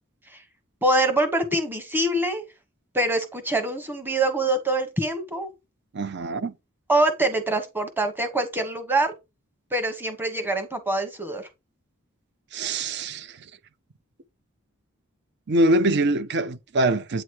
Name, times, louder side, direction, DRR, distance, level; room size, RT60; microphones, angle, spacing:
voice 1, 0.8-2.4 2.9-5.5 6.9-9.1 9.7-11.4, right 2 dB, 10° right, 1.2 m, -24 dB
voice 2, 5.9-6.5 12.5-13.5 15.5-17.2, right 1 dB, 55° right, 0.6 m, -24 dB
8.7 x 3.1 x 4.6 m
head